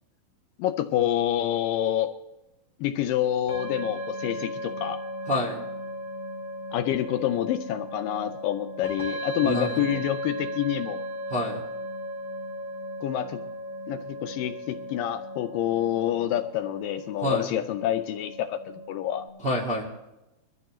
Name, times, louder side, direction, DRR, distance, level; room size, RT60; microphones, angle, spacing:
voice 1, 0.6-2.1 2.8-5.0 6.7-11.0 13.0-13.4 13.9-19.3, left 12 dB, 80° left, 9 dB, 2.1 m, -27 dB
sound 1, 3.5-19.3, equal, 35° left, 5.7 m, -36 dB
voice 2, 5.3-5.6 9.4-9.7 11.3-11.6 17.2-17.5 19.4-19.8, equal, 30° right, -2 dB, 1.1 m, -27 dB
22.5 x 13.5 x 3.0 m, 0.97 s
omnidirectional pair, 4.2 m